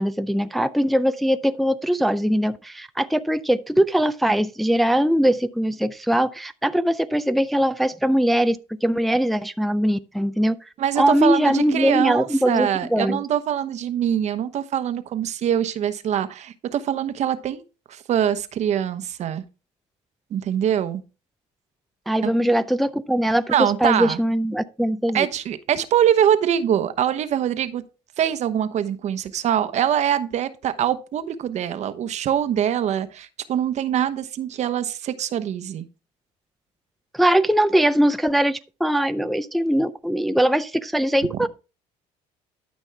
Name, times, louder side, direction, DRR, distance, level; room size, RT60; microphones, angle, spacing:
voice 1, 0.0-10.6 11.0-13.2 22.1-23.4 23.8-25.3 37.1-41.5, equal, ahead, 0.4 m, -21 dB
voice 2, 10.8-17.6 17.9-19.4 20.3-21.0 22.2-22.3 23.5-24.2 25.1-27.8 28.2-35.9, right 9 dB, 55° right, 1.0 m, -23 dB
12.5 x 5.4 x 3.4 m
supercardioid pair, 95°, 14 cm